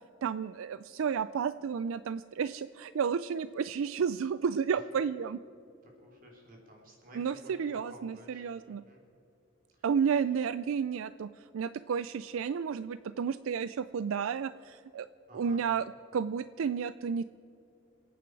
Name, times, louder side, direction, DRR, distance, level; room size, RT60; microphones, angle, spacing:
voice 1, 0.2-5.4 7.1-8.8 9.8-15.1 15.3-15.9 16.1-17.2, right 6 dB, 75° right, 14 dB, 0.4 m, -32 dB
voice 2, 5.8-7.5 7.9-8.4 8.9-9.0 15.3-15.6, right 1 dB, 40° right, 0 dB, 3.5 m, -53 dB
27.5 x 9.3 x 4.7 m, 2.8 s
head